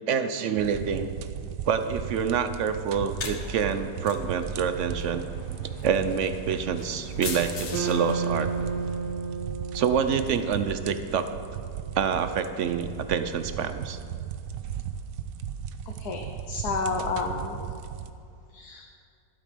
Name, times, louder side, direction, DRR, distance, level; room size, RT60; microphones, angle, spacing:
voice 1, 0.1-1.1 1.6-5.3 5.8-8.5 9.7-11.3 11.9-14.0, right 7 dB, 65° right, 10 dB, 0.8 m, -27 dB
sound 1, 0.6-18.1, right 8 dB, 90° right, 1.3 m, -37 dB
sound 2, 3.0-9.4, left 4 dB, 45° left, 1.3 m, -41 dB
sound 3, 7.7-12.0, right 4 dB, 15° right, 2.8 m, -33 dB
voice 2, 15.9-17.6 18.5-18.8, left 4 dB, 70° left, 1 dB, 1.5 m, -31 dB
13.0 x 12.0 x 5.1 m, 2.4 s
omnidirectional pair, 1.8 m